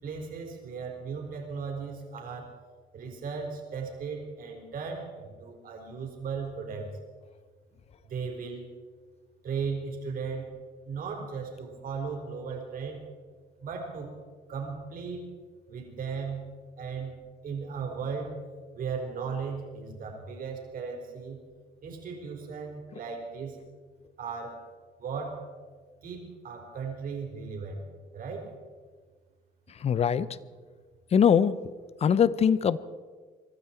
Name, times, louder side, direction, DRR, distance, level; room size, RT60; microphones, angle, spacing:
voice 1, 0.0-2.5 2.9-6.9 8.0-8.6 9.4-10.5 10.8-13.0 13.6-14.1 14.5-15.3 15.7-16.5 16.8-17.2 17.4-18.4 18.7-21.4 21.8-23.6 24.2-24.6 25.0-25.4 26.0-27.8 28.1-28.5, right 5 dB, 55° right, 1 dB, 4.3 m, -36 dB
voice 2, 29.7-30.4 31.1-31.7 32.0-32.8, left 7 dB, 40° left, 17 dB, 0.7 m, -22 dB
24.5 x 13.0 x 4.5 m, 1.5 s
cardioid pair, 110°, 17 cm